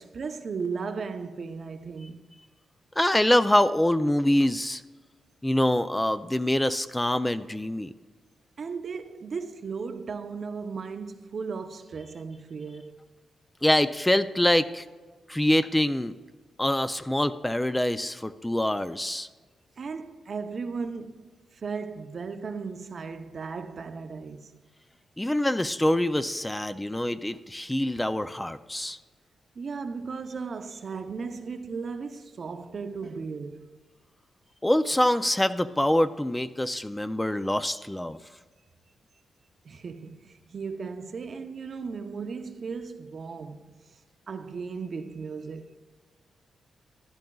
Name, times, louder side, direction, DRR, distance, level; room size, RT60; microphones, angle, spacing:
voice 1, 0.0-2.2 8.6-13.0 19.8-24.5 29.5-33.8 39.6-43.7 44.3-45.8, right 5 dB, 55° right, 0.7 m, -36 dB
voice 2, 3.0-4.8 5.4-7.9 13.6-14.8 15.3-16.1 16.6-19.3 25.2-29.0 34.6-38.2, left 1 dB, 10° left, 0.4 m, -25 dB
14.5 x 10.5 x 2.3 m
cardioid pair, 85°, 0 cm